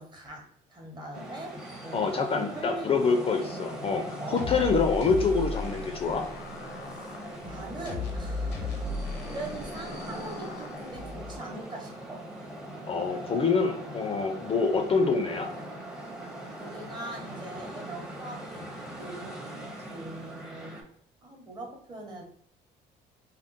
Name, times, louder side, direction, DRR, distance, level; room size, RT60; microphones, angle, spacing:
voice 1, 0.0-1.5 1.8-3.2 4.2-4.4 6.9-8.8 9.3-12.2 16.5-19.6 19.9-20.9 21.2-22.2, right 2 dB, 25° right, 1 dB, 0.9 m, -42 dB
sound 1, 1.1-20.8, right 1 dB, 5° right, 0.6 m, -41 dB
voice 2, 1.9-6.3 12.9-15.5, left 4 dB, 35° left, 4 dB, 0.4 m, -26 dB
sound 2, 4.4-11.4, left 3 dB, 85° left, 0.6 m, -36 dB
3.6 x 2.3 x 2.5 m, 0.64 s
cardioid pair, 110°, 17 cm